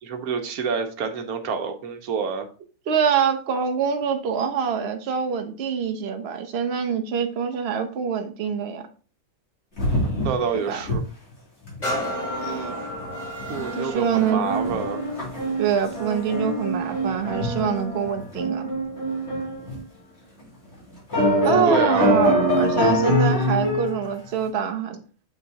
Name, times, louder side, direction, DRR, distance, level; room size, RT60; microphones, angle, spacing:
voice 1, 0.0-2.5 10.2-11.0 13.5-15.0 21.7-22.2, right 6 dB, 80° right, 5 dB, 1.3 m, -27 dB
voice 2, 2.9-8.8 10.5-10.8 12.4-12.8 13.7-14.4 15.6-18.7 21.4-25.0, right 7 dB, 50° right, 6 dB, 1.0 m, -25 dB
sound 1, 9.8-10.5 10.8-11.0 11.3-11.4 11.6-12.0 13.0-13.1 13.4-19.8 20.4-20.5 21.1-24.0, equal, 45° left, 2.9 m, -24 dB
sound 2, 11.8-19.4 20.0-20.1, equal, 30° left, 2.4 m, -35 dB
7.0 x 4.9 x 2.8 m, 0.38 s
omnidirectional pair, 1.6 m